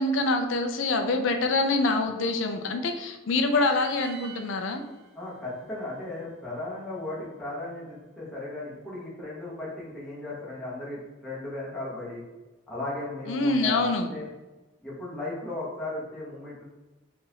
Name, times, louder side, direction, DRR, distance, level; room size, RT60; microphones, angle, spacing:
voice 1, 0.0-4.8 13.3-14.1, left 2 dB, 70° left, 6 dB, 0.4 m, -25 dB
sound 1, 3.5-6.7, right 5 dB, 80° right, 0.9 m, -48 dB
voice 2, 5.1-12.2 12.7-14.3 14.8-16.6, left 2 dB, 5° left, -9 dB, 1.0 m, -36 dB
3.9 x 2.5 x 2.8 m, 1.1 s
head